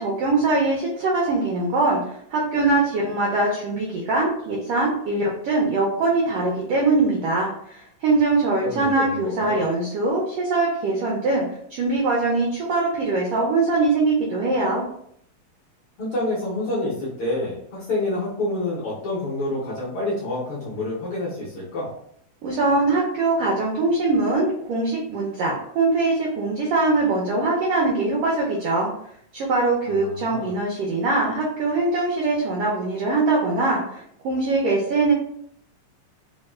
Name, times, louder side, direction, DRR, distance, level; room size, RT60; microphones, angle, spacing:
voice 1, 0.0-11.4 11.7-14.9 22.4-28.9 29.3-35.1, right 3 dB, 80° right, -3 dB, 1.3 m, -22 dB
voice 2, 8.6-9.7 16.0-21.9 29.8-30.5, left 2 dB, 65° left, -8 dB, 1.4 m, -28 dB
4.6 x 2.3 x 2.3 m, 0.68 s
omnidirectional pair, 3.4 m